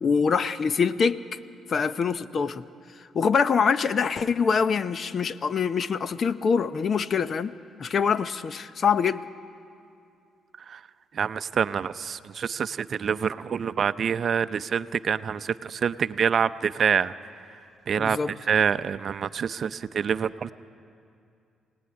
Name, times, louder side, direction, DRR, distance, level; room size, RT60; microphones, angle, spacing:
voice 1, 0.0-1.2 1.7-2.6 3.1-7.5 7.8-9.2 18.0-18.3, left 6 dB, 50° left, 13 dB, 0.8 m, -24 dB
voice 2, 11.1-17.3 17.9-20.5, right 7 dB, 50° right, 13 dB, 0.6 m, -26 dB
26.0 x 18.5 x 9.8 m, 2.5 s
cardioid pair, 90°, 0 cm